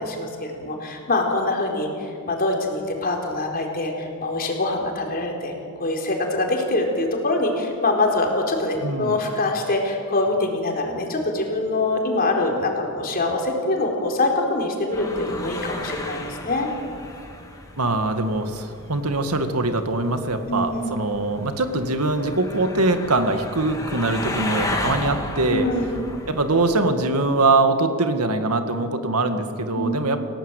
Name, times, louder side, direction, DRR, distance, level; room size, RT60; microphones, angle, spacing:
voice 1, 0.0-1.9 2.3-16.2 16.4-16.7 20.5-20.9 25.5-26.0 29.7-30.0, left 2 dB, 45° left, 1 dB, 4.3 m, -24 dB
voice 2, 8.8-9.2 17.8-25.7 26.3-30.3, right 2 dB, 80° right, 7 dB, 1.9 m, -22 dB
sound 1, 14.9-26.7, left 2 dB, 15° left, 3.0 m, -34 dB
29.0 x 17.5 x 8.2 m, 2.5 s
head